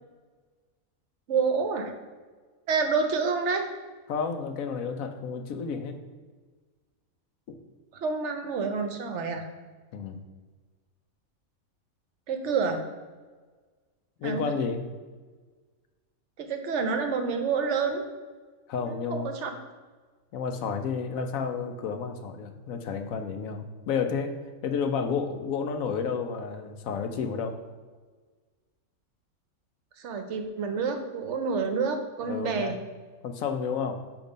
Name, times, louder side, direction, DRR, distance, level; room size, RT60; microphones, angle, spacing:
voice 1, 1.3-1.9 2.7-3.7 7.9-9.5 12.3-12.8 14.2-14.4 16.4-18.1 18.8-19.5 30.0-32.8, right 5 dB, 65° right, 6 dB, 0.9 m, -28 dB
voice 2, 4.1-6.0 7.5-7.6 9.9-10.2 14.2-14.8 18.7-19.3 20.3-27.6 32.3-32.8 33.2-34.0, left 5 dB, 75° left, 6 dB, 1.0 m, -31 dB
6.8 x 3.0 x 5.1 m, 1.4 s
omnidirectional pair, 1.5 m